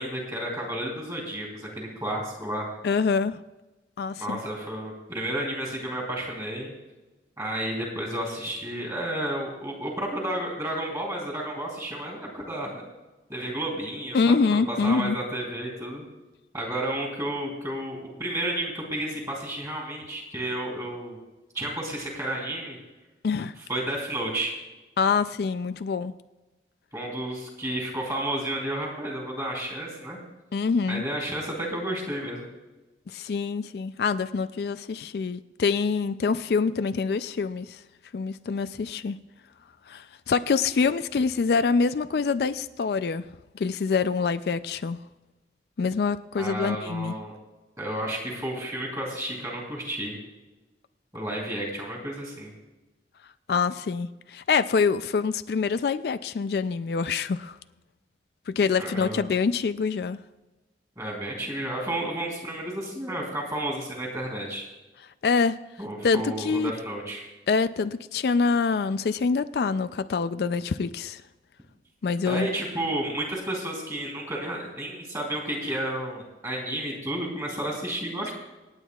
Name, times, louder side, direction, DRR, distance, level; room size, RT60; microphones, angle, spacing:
voice 1, 0.0-2.7 4.2-6.7 7.4-12.7 13.3-16.0 16.5-21.2 21.5-22.8 23.7-24.5 26.9-30.2 30.9-32.5 46.4-47.3 47.8-50.2 51.1-52.5 58.8-59.2 61.0-64.6 65.8-67.2 72.3-78.3, right 1 dB, 20° right, -1 dB, 3.3 m, -31 dB
voice 2, 2.8-3.4 4.0-4.4 14.1-15.2 23.2-23.6 25.0-26.1 30.5-31.0 33.1-37.8 38.1-39.2 39.9-43.3 43.5-45.0 45.8-47.1 53.5-57.6 58.5-60.2 65.2-65.6 66.0-66.7 67.5-71.2 72.0-72.5, left 5 dB, 60° left, 12 dB, 0.4 m, -25 dB
27.0 x 9.1 x 2.3 m, 1.1 s
head